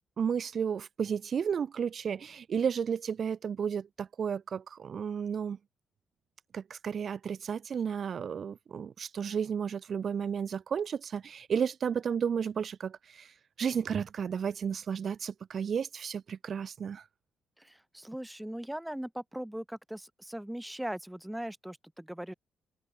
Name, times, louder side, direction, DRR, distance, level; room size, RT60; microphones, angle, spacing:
voice 1, 0.2-5.6 6.5-17.1, right 7 dB, 50° right, 0.6 m, -33 dB
voice 2, 17.6-22.3, right 1 dB, 5° right, 5.4 m, -39 dB
open air
cardioid pair, 90°, 0 cm